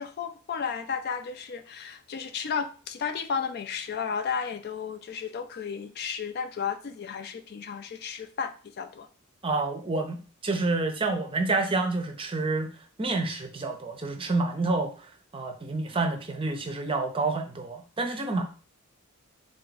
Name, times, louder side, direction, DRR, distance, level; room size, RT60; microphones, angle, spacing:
voice 1, 0.0-9.1, left 6 dB, 45° left, 8 dB, 0.4 m, -33 dB
voice 2, 9.4-10.2 10.4-12.7 13.0-18.4, right 3 dB, 25° right, 5 dB, 0.6 m, -28 dB
3.8 x 3.4 x 4.0 m, 0.38 s
head